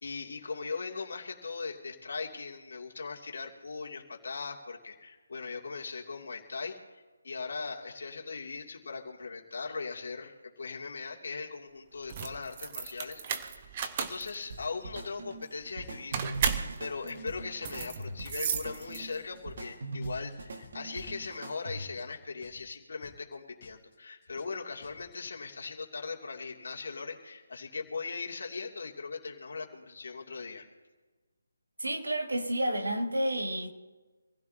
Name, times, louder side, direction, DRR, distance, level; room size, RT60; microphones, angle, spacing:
voice 1, 0.0-13.7 14.0-30.7, left 4 dB, 60° left, 2.9 m, -39 dB
sound 1, 12.0-19.3, right 7 dB, 30° right, 1.0 m, -35 dB
sound 2, 14.5-22.1, right 2 dB, 50° right, 2.0 m, -42 dB
sound 3, 15.8-16.2 16.4-16.8 17.0-17.4 17.6-18.0 18.2-18.6 18.8-19.2 19.4-19.8 20.0-20.4 20.6-21.0 21.2-21.6 21.8-22.2 22.4-22.8 23.0-23.4 23.6-24.0 24.2-24.6 24.8-25.2, left 5 dB, 35° left, 2.9 m, -56 dB
voice 2, 31.8-33.7, right 1 dB, 75° right, 2.4 m, -30 dB
26.0 x 15.5 x 2.9 m
figure-of-eight pair, 155°, 0 cm